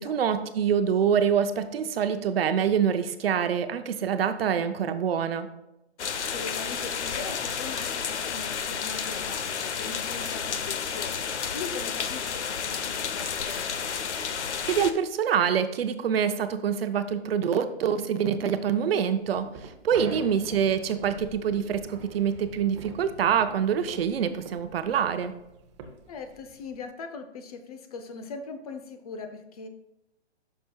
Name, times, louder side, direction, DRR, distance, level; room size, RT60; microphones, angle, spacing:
voice 1, 0.0-5.5 14.7-19.5 19.8-25.3, right 7 dB, 60° right, 9 dB, 0.7 m, -25 dB
sound 1, 6.0-14.9, left 7 dB, 85° left, 0.8 m, -31 dB
voice 2, 6.3-13.8 20.0-20.3 26.1-29.7, left 4 dB, 35° left, 7 dB, 0.6 m, -40 dB
sound 2, 18.7-26.8, right 4 dB, 25° right, 0.7 m, -44 dB
10.0 x 6.0 x 2.3 m, 0.89 s
hypercardioid pair, 150°, 34 cm